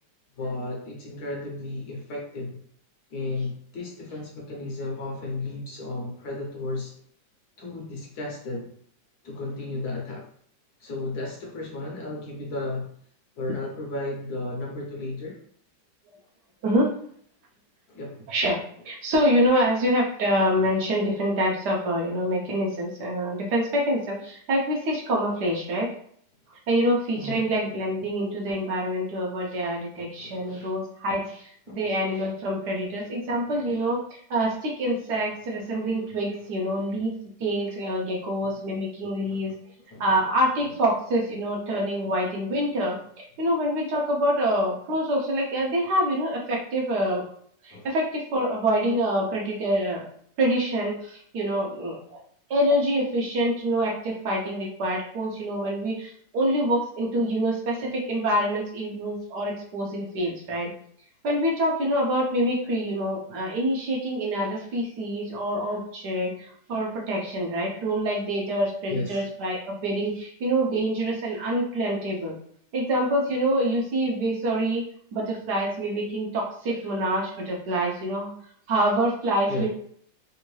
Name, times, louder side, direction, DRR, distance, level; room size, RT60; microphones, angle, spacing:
voice 1, 0.4-2.6 3.1-6.9 7.6-8.7 9.2-10.3 10.8-12.9 13.4-15.4 17.9-18.2 27.1-27.5 30.2-30.7 31.7-32.0 33.5-33.7 36.0-36.1 38.4-38.6 39.3-39.6 39.9-40.4 40.7-40.8 47.7-47.9 68.9-69.3 79.5-79.7, left 2 dB, 65° left, -1 dB, 1.2 m, -34 dB
voice 2, 18.9-25.9 26.7-31.2 31.7-34.0 34.3-37.1 37.4-39.5 40.0-43.0 43.4-47.2 47.6-50.0 50.4-52.2 52.5-60.7 61.2-72.3 72.7-74.8 75.1-78.3 78.7-79.7, equal, 65° right, -1 dB, 1.3 m, -26 dB
3.6 x 2.5 x 3.0 m, 0.62 s
omnidirectional pair, 2.0 m